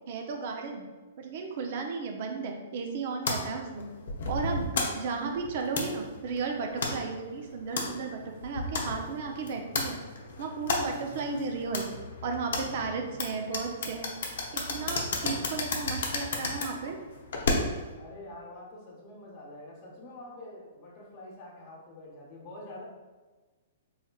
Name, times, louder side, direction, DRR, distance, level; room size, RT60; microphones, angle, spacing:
voice 1, 0.1-0.9 1.2-3.9 4.3-4.7 5.0-10.0 10.4-11.9 12.2-14.1 14.5-17.0, right 4 dB, 55° right, 3 dB, 0.5 m, -34 dB
sound 1, 3.3-17.9, left 3 dB, 70° left, 0.7 m, -34 dB
voice 2, 18.0-22.8, left 1 dB, 30° left, -5 dB, 1.0 m, -46 dB
4.1 x 3.2 x 2.3 m, 1.3 s
hypercardioid pair, 125°, 0 cm